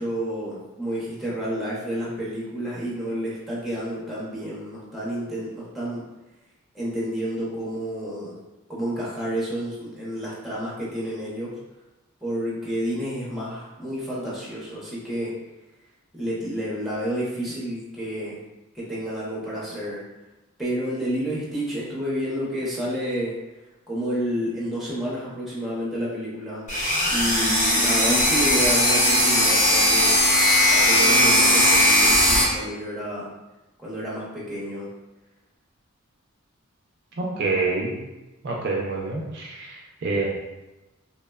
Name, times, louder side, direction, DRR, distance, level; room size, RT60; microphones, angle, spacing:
voice 1, 0.0-6.0 6.7-8.3 8.7-11.5 12.2-15.3 16.1-18.4 18.7-20.0 20.6-23.3 23.9-26.6 27.1-30.2 30.7-33.3 33.8-34.9, equal, ahead, -7 dB, 0.6 m, -30 dB
sound 1, 26.7-32.4, left 1 dB, 35° left, 0.8 m, -18 dB
voice 2, 37.2-38.0 38.4-40.3, right 3 dB, 50° right, -2 dB, 0.4 m, -27 dB
2.9 x 2.0 x 2.2 m, 1.0 s
head